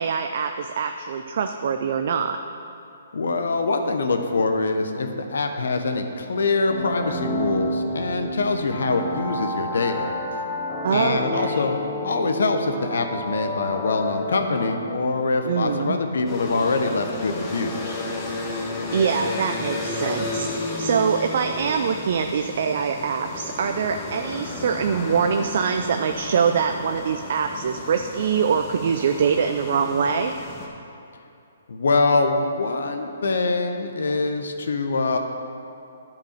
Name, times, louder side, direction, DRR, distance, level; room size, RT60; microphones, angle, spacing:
voice 1, 0.0-2.4 10.8-11.7 15.5-16.0 18.9-20.5 20.8-30.3, right 6 dB, 60° right, 6 dB, 0.5 m, -24 dB
voice 2, 3.1-10.4 10.9-18.0 31.7-35.2, left 3 dB, 75° left, 5 dB, 1.0 m, -24 dB
sound 1, 6.7-15.3, left 1 dB, ahead, 0.8 m, -31 dB
sound 2, 16.3-30.7, left 2 dB, 20° left, 1.5 m, -33 dB
10.5 x 5.2 x 6.7 m, 2.8 s
hypercardioid pair, 140°, 0 cm